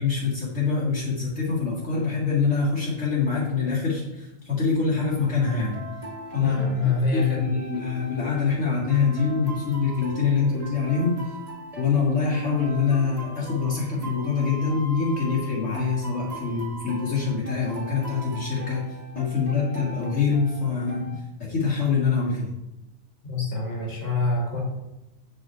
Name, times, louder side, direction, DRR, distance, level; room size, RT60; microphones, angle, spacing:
voice 1, 0.0-5.8 6.3-6.6 7.1-11.4 11.8-21.1 21.5-22.5, left 5 dB, 65° left, -8 dB, 2.3 m, -25 dB
sound 1, 5.0-21.2, right 1 dB, 30° right, 1.3 m, -40 dB
voice 2, 6.4-7.5 23.2-24.6, left 3 dB, 45° left, -3 dB, 2.6 m, -25 dB
8.7 x 5.3 x 4.4 m, 0.94 s
omnidirectional pair, 1.4 m